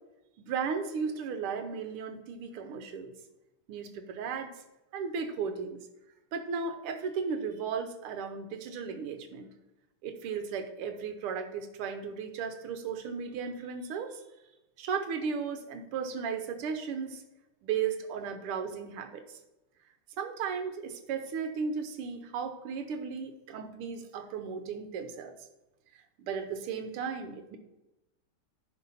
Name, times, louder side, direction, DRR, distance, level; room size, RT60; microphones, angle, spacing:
voice 1, 0.4-3.1 3.7-4.5 4.9-5.8 6.3-9.5 10.0-14.2 14.8-17.2 17.6-19.2 20.2-25.3 26.2-27.6, right 6 dB, 85° right, 7 dB, 1.7 m, -35 dB
10.0 x 3.8 x 5.5 m, 0.98 s
omnidirectional pair, 2.4 m